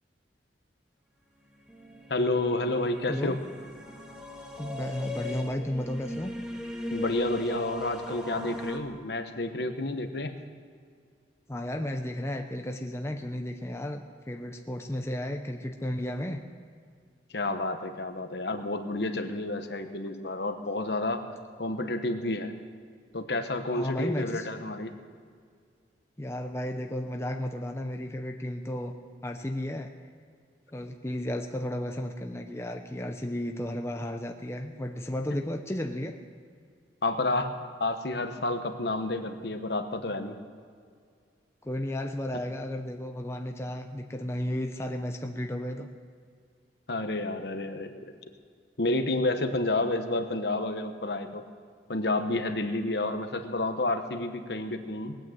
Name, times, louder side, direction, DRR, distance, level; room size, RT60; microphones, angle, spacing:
sound 1, 1.5-8.8, left 1 dB, 5° right, 1.3 m, -38 dB
voice 1, 2.1-3.4 6.9-10.4 17.3-21.2 21.6-22.5 23.1-24.9 37.0-40.4 46.9-48.1 48.8-51.4 51.9-55.2, left 2 dB, 60° left, 7 dB, 1.1 m, -30 dB
voice 2, 4.6-6.4 11.5-16.4 23.7-24.5 26.2-28.9 29.2-29.9 30.7-36.2 41.6-45.9, left 1 dB, 15° left, 4 dB, 0.6 m, -33 dB
19.5 x 9.0 x 7.9 m, 2.1 s
head